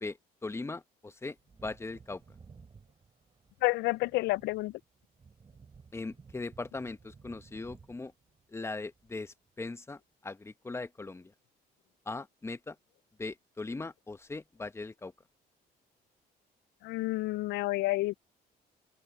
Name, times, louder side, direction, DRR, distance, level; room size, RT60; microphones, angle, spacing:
voice 1, 0.0-1.4 1.6-2.2 5.9-8.1 8.5-11.3 12.1-12.8 13.2-15.1, left 3 dB, 15° left, 1.0 m, -39 dB
Wind / Thunder, 1.3-9.6 9.9-10.0, right 5 dB, 30° right, 7.2 m, -57 dB
voice 2, 3.6-4.8 16.8-18.1, left 20 dB, 85° left, 0.4 m, -29 dB
open air
cardioid pair, 110°, 17 cm